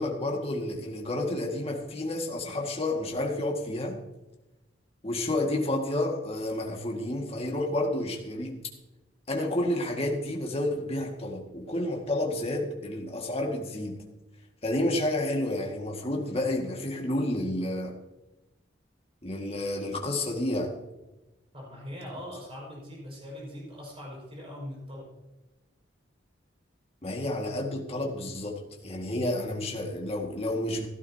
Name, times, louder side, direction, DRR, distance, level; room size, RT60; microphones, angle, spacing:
voice 1, 0.0-4.0 5.0-8.6 9.3-14.0 14.6-17.9 19.2-20.8 27.0-30.9, left 1 dB, 35° left, 2.0 m, -30 dB
voice 2, 21.5-25.1, equal, 30° right, 5.4 m, -41 dB
16.0 x 13.0 x 2.9 m
head